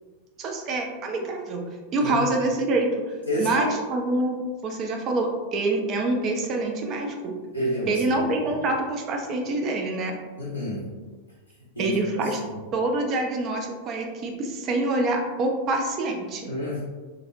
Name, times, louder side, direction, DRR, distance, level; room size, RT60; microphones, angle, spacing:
voice 1, 0.4-1.6 1.9-4.4 4.6-7.3 7.9-10.2 11.8-12.4 12.7-16.5, right 2 dB, 35° right, 2 dB, 0.4 m, -26 dB
voice 2, 3.3-3.7 7.5-8.2 10.4-10.8 11.8-12.3 16.5-16.8, equal, 90° right, -9 dB, 0.6 m, -29 dB
2.5 x 2.0 x 2.5 m, 1.3 s
figure-of-eight pair, 90°, 0 cm